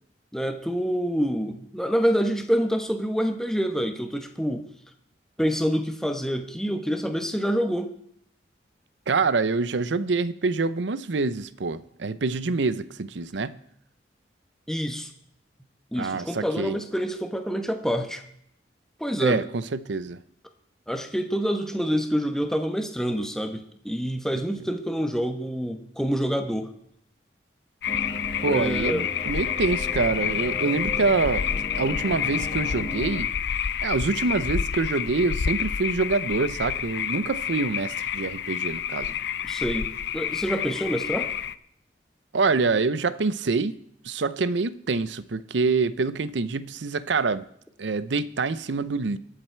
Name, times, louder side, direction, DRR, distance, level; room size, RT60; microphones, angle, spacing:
voice 1, 0.3-4.6 5.4-7.9 14.7-15.1 15.9-18.2 19.0-19.4 20.9-26.7 28.4-29.1 39.5-41.3, equal, 5° left, 1.1 m, -27 dB
voice 2, 9.1-13.6 16.0-16.8 19.2-20.2 28.4-31.5 31.7-33.3 33.8-39.1 42.3-43.8 44.0-47.4 47.8-49.2, right 4 dB, 80° right, 0.7 m, -26 dB
sound 1, 27.8-41.5, left 8 dB, 65° left, 0.5 m, -29 dB
sound 2, 27.9-33.2, left 1 dB, 25° left, 1.8 m, -37 dB
22.5 x 7.5 x 4.6 m
head